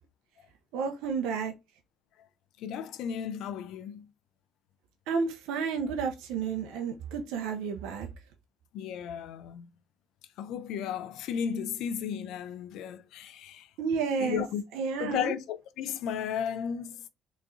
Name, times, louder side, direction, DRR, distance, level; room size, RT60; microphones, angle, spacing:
voice 1, 0.7-1.5 5.1-8.1 13.8-14.4 14.8-15.3, right 5 dB, 85° right, 0.7 m, -31 dB
voice 2, 2.6-4.1 6.7-6.8 8.7-9.7 10.4-13.7 14.2-14.6 15.0-17.1, left 8 dB, 80° left, 0.5 m, -34 dB
3.5 x 3.1 x 2.6 m
supercardioid pair, 80°, 0 cm